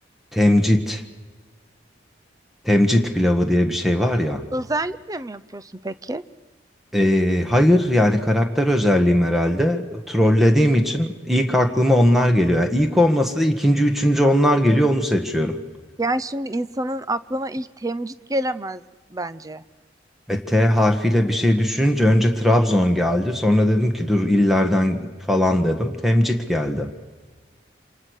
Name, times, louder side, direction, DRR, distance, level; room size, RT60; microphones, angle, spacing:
voice 1, 0.3-1.0 2.6-4.4 6.9-15.6 20.3-26.9, left 1 dB, ahead, 5 dB, 1.5 m, -19 dB
voice 2, 4.5-6.2 16.0-18.8 19.1-19.6, right 1 dB, 20° right, 14 dB, 0.7 m, -27 dB
28.5 x 27.0 x 6.6 m, 1.4 s
head